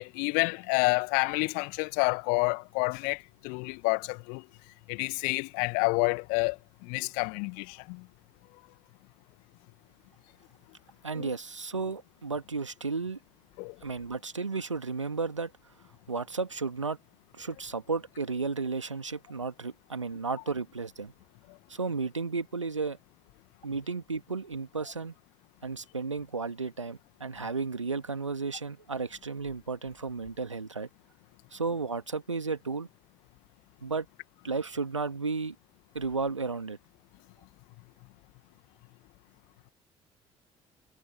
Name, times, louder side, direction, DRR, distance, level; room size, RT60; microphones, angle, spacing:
voice 1, 0.0-4.4 4.9-8.0 11.2-11.3 13.6-13.8, left 34 dB, 65° left, 1.8 m, -29 dB
voice 2, 11.0-13.2 13.8-15.5 16.1-17.0 17.4-21.1 21.7-23.0 23.6-25.1 25.6-30.9 31.5-32.9 33.8-34.1 34.4-35.6 35.9-36.8, right 4 dB, 85° right, 2.1 m, -33 dB
figure-of-eight pair, 50°, 15 cm